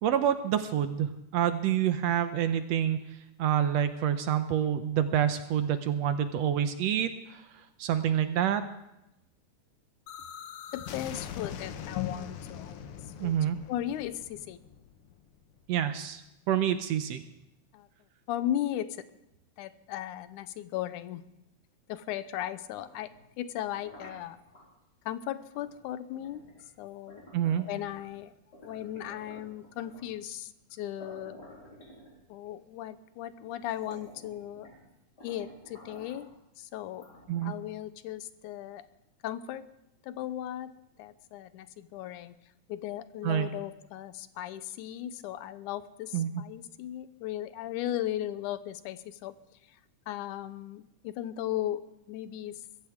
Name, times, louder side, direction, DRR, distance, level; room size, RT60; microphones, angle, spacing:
voice 1, 0.0-3.0 3.4-7.4 7.8-8.6 13.2-13.6 15.7-16.2 16.5-17.2 27.3-27.7 37.3-37.5 43.2-43.5 46.1-46.4, right 10 dB, 75° right, 10 dB, 1.7 m, -27 dB
sound 1, 10.1-15.8, left 8 dB, 65° left, 1.5 m, -43 dB
voice 2, 10.7-13.3 13.7-14.6 17.7-17.9 18.3-19.0 19.6-21.2 21.9-23.1 23.4-24.4 25.1-26.4 26.8-27.2 27.7-28.3 28.6-31.4 32.3-34.7 35.2-36.3 36.6-37.0 37.4-38.9 39.2-39.6 40.0-40.7 41.0-42.3 42.7-49.3 50.1-51.8 52.1-52.6, left 12 dB, 90° left, 13 dB, 2.2 m, -36 dB
sound 2, 22.6-24.7 25.5-25.7 26.1-28.2 28.5-30.2 30.7-30.8 31.0-32.5 33.2-33.3 33.6-34.9 35.2-36.3 36.9-37.7, left 1 dB, 30° left, 5.5 m, -52 dB
22.0 x 15.0 x 3.6 m, 0.89 s
omnidirectional pair, 3.4 m